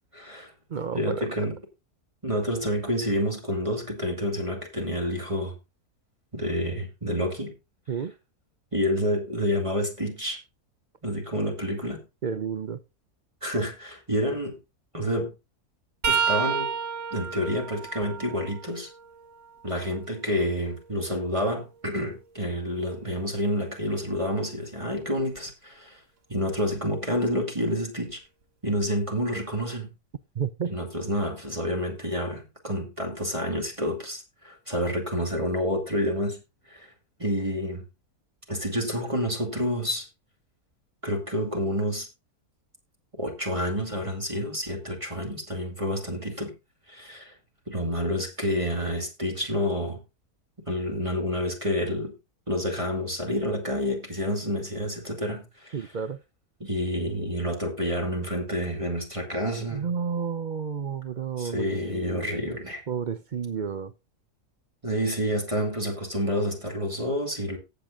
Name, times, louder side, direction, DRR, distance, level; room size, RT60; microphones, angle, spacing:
voice 1, 0.1-0.5 0.9-1.6 2.2-5.6 6.3-7.5 8.7-10.4 11.0-12.0 13.4-14.6 14.9-15.3 16.1-16.7 17.1-18.9 19.6-26.0 26.3-28.2 28.6-29.9 30.7-36.4 36.7-36.9 37.2-37.8 38.5-40.1 41.0-42.1 43.1-46.5 46.9-47.3 47.7-50.0 50.7-52.1 52.5-55.7 56.6-59.9 61.4-62.8 64.8-67.6, equal, 20° right, 2.6 m, -29 dB
voice 2, 0.7-1.3 7.9-8.1 12.2-12.8 30.3-30.7 55.7-56.2 59.7-62.6 62.9-63.9, right 7 dB, 60° right, 0.5 m, -31 dB
sound 1, 16.0-19.8 20.3-22.3 25.2-25.4 26.6-26.8 28.1-28.2, right 6 dB, 40° right, 1.5 m, -32 dB
17.5 x 6.8 x 2.4 m
omnidirectional pair, 1.6 m